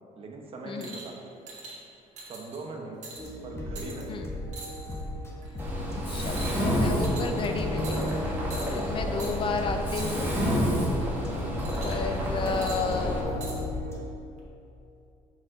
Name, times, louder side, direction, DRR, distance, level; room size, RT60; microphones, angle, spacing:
voice 1, 0.2-1.4 2.2-3.0 3.4-4.1 9.0-9.3 11.3-11.8 12.2-13.6, right 3 dB, 45° right, 1 dB, 0.8 m, -42 dB
sound 1, 0.8-1.1 1.5-1.8 2.2-2.6 3.0-3.3 3.8-4.0 4.5-5.0 5.4-5.7 6.2-6.7 7.0-7.5 7.8-8.2 8.5-8.8 9.2-9.3 9.9-10.3 11.6-12.1 12.5-13.6 14.4-14.5, right 3 dB, 65° right, 1.3 m, -43 dB
sound 2, 3.2-14.0, left 1 dB, 20° left, 0.9 m, -35 dB
Mechanisms, 5.6-13.2, equal, 15° right, 1.5 m, -29 dB
voice 2, 6.1-8.1 8.7-10.3 11.8-13.6, left 4 dB, 40° left, 5 dB, 0.4 m, -32 dB
6.1 x 4.6 x 3.8 m, 2.7 s
cardioid pair, 125°, 13 cm